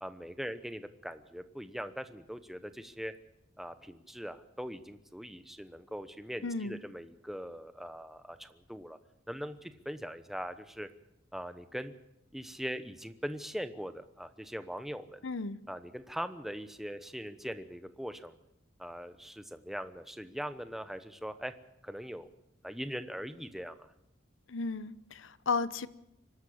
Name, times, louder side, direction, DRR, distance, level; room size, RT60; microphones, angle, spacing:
voice 1, 0.0-3.1 3.6-9.0 9.3-10.9 11.3-11.9 12.3-15.2 15.7-18.4 18.8-21.5 21.8-22.3 22.6-23.9, equal, ahead, 10 dB, 1.0 m, -41 dB
voice 2, 6.4-6.8 15.2-15.6 24.5-25.9, left 4 dB, 80° left, 16 dB, 0.8 m, -34 dB
24.5 x 12.5 x 8.6 m, 0.84 s
head